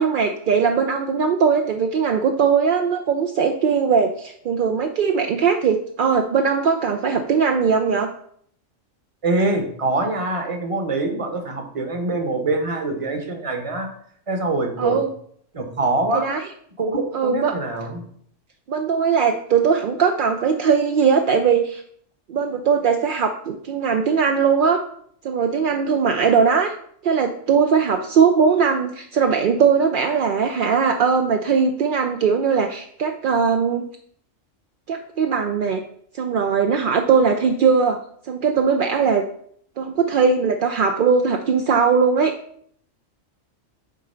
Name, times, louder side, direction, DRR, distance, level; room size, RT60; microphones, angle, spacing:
voice 1, 0.0-8.1 14.8-15.1 16.1-16.4 17.1-17.6 18.7-21.8 22.3-24.8 25.2-26.7 27.0-33.9 34.9-35.8 36.1-38.0 38.2-39.3 39.8-42.3, right 6 dB, 60° right, 4 dB, 0.5 m, -20 dB
voice 2, 9.2-13.9 14.3-15.0 15.5-16.3 16.8-18.0, right 2 dB, 30° right, 5 dB, 1.0 m, -24 dB
6.5 x 3.9 x 5.5 m, 0.64 s
omnidirectional pair, 1.3 m